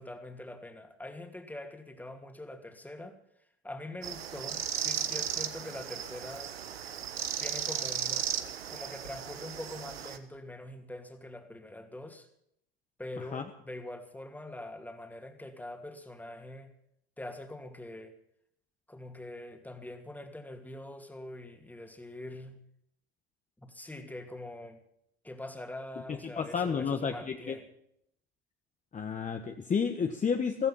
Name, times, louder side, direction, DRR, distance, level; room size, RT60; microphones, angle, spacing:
voice 1, 0.0-3.2 3.6-6.5 7.4-8.3 8.7-12.3 13.0-16.7 17.2-18.1 18.9-22.6 23.6-24.8 25.2-27.7, left 1 dB, 5° left, 6 dB, 2.6 m, -44 dB
sound 1, 4.0-10.2, right 9 dB, 80° right, 1.4 m, -35 dB
voice 2, 26.2-27.6 28.9-30.7, left 6 dB, 25° left, 5 dB, 1.4 m, -31 dB
15.5 x 15.0 x 5.7 m, 0.73 s
hypercardioid pair, 75°, 30 cm